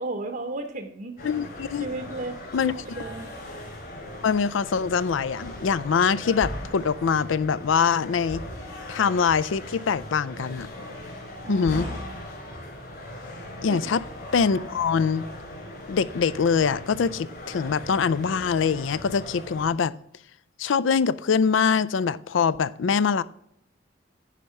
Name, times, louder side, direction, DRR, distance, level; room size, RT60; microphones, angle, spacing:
voice 1, 0.0-1.1 1.8-3.3 10.9-11.1 11.4-12.1 13.7-13.9, right 2 dB, 45° right, 0.8 m, -34 dB
voice 2, 1.2-1.9 2.5-2.7 4.2-8.4 8.9-10.7 11.5-11.9 13.6-14.0 14.3-15.2 15.9-19.9 20.6-23.2, left 6 dB, 70° left, 0.4 m, -23 dB
sound 1, 1.2-19.7, left 1 dB, 50° left, 3.8 m, -39 dB
10.0 x 5.3 x 5.6 m
head